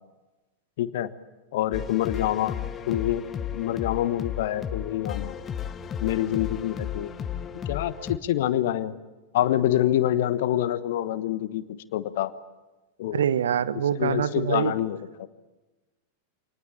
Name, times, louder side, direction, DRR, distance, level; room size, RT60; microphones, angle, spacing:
voice 1, 0.8-1.1 1.5-2.6 2.9-3.3 3.5-5.4 6.0-7.1 7.7-9.0 9.3-11.6 11.9-12.3 13.0-13.2 14.0-15.3, left 12 dB, 55° left, 15 dB, 1.2 m, -26 dB
sound 1, 1.7-8.2, left 8 dB, 25° left, 1.0 m, -34 dB
voice 2, 13.1-14.7, right 9 dB, 65° right, 16 dB, 0.9 m, -25 dB
26.5 x 19.5 x 8.8 m, 1.1 s
figure-of-eight pair, 90°, 0 cm